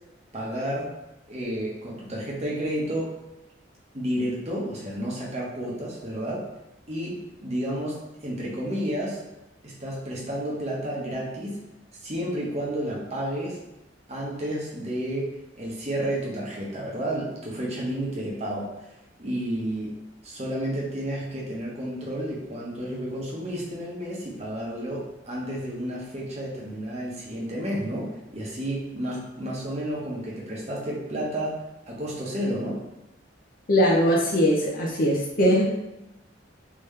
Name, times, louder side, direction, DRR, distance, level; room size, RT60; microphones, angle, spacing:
voice 1, 0.3-0.9 1.3-3.1 3.9-6.4 6.9-9.2 9.6-11.6 12.0-13.6 14.1-18.7 19.2-20.0 20.2-31.6 31.9-32.8, right 1 dB, 35° right, -4 dB, 1.0 m, -31 dB
voice 2, 33.7-35.7, equal, 50° left, -3 dB, 0.7 m, -21 dB
3.6 x 3.0 x 3.3 m, 0.92 s
head